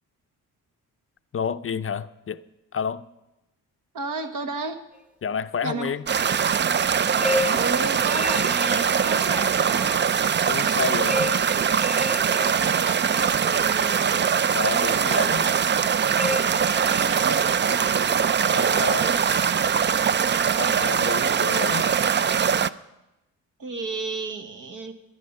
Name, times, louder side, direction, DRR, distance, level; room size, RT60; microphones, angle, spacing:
voice 1, 1.3-2.4 2.7-3.1 5.2-6.0 10.5-11.2 14.5-15.5 18.5-19.1 20.5-21.9, left 6 dB, 40° left, 0.5 m, -30 dB
voice 2, 3.9-4.8 5.6-5.9 7.5-10.1 10.7-11.3 12.1-14.3 16.9-18.3 18.6-19.2 23.6-24.9, right 3 dB, 65° right, 1.5 m, -33 dB
sound 1, 6.1-22.7, right 7 dB, 35° right, 0.4 m, -22 dB
sound 2, 7.2-9.5 11.1-13.2 16.2-17.0, left 1 dB, 5° right, 1.0 m, -31 dB
13.0 x 10.0 x 6.8 m
cardioid pair, 80°, 34 cm